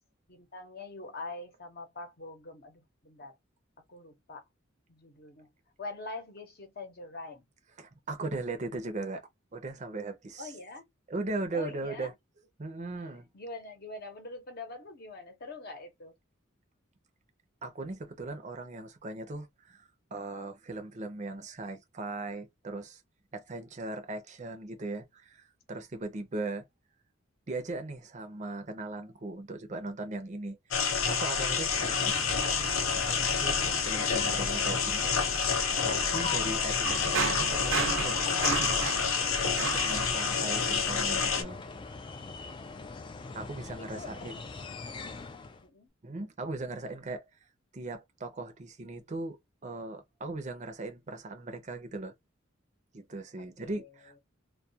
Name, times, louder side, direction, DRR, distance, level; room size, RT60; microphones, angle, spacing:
voice 1, 0.3-3.4 3.9-4.4 4.9-5.5 5.8-7.5 10.4-10.8 11.5-12.1 13.3-16.1 42.6-43.1 43.8-44.3 45.6-45.9 53.4-53.9, left 3 dB, 50° left, 0.8 m, -44 dB
voice 2, 7.8-10.5 11.1-12.1 12.6-13.3 17.6-23.0 23.3-26.6 27.5-32.4 33.1-35.2 35.8-38.9 39.4-41.6 43.3-44.4 46.0-47.3 47.7-52.1 52.9-54.2, right 2 dB, 35° right, 0.5 m, -39 dB
sound 1, 30.7-41.4, left 6 dB, 90° left, 0.6 m, -28 dB
sound 2, 31.4-45.7, left 4 dB, 25° left, 0.3 m, -42 dB
sound 3, 36.8-40.6, right 5 dB, 75° right, 0.6 m, -33 dB
2.3 x 2.2 x 2.7 m
head